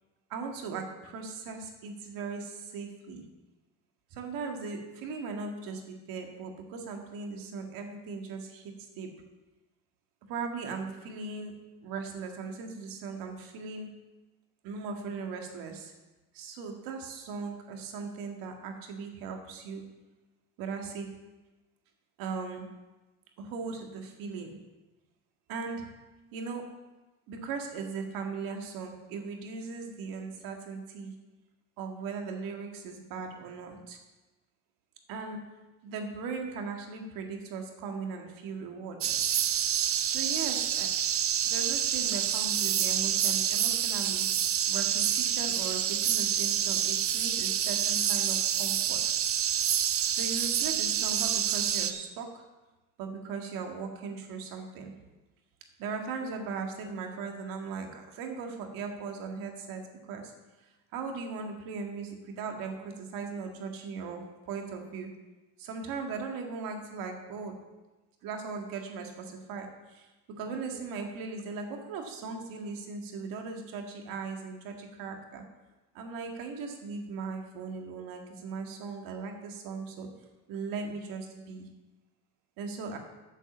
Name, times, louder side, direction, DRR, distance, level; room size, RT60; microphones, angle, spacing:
voice 1, 0.3-3.2 4.1-9.1 10.3-11.5 11.8-13.9 14.6-15.9 16.3-19.8 20.6-21.1 22.2-22.7 23.4-24.6 25.5-25.8 26.3-26.6 27.3-31.1 31.8-34.0 35.1-35.4 35.8-39.3 40.0-40.9 41.4-44.3 44.7-49.2 50.0-52.4 53.0-54.9 55.8-60.3 60.9-65.1 65.6-67.6 68.2-70.1 70.4-75.4 75.9-80.1 80.5-81.7 82.6-83.0, right 4 dB, 85° right, 3 dB, 1.9 m, -38 dB
sound 1, 39.0-51.9, right 9 dB, 45° right, 0.7 m, -28 dB
8.0 x 7.6 x 7.2 m, 1.1 s
cardioid pair, 120°, 33 cm